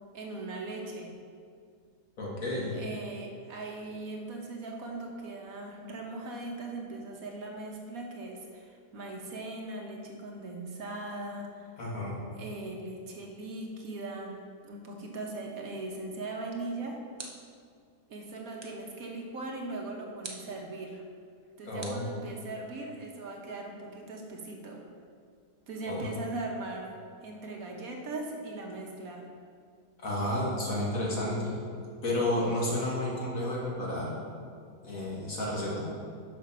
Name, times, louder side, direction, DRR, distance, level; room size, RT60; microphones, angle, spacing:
voice 1, 0.1-1.1 2.7-11.7 12.4-17.0 18.1-21.0 21.6-24.9 25.7-27.0 27.2-29.2, right 2 dB, 60° right, 0 dB, 1.4 m, -39 dB
voice 2, 2.2-2.8 11.8-12.2 21.7-22.0 25.9-26.1 30.0-31.6 32.0-34.1 34.8-35.9, left 1 dB, 55° left, -4 dB, 2.1 m, -31 dB
sound 1, 17.2-17.7 18.6-18.9 20.2-20.6 21.8-22.7, right 2 dB, 25° right, 0.5 m, -46 dB
7.2 x 5.6 x 6.0 m, 2.2 s
omnidirectional pair, 1.7 m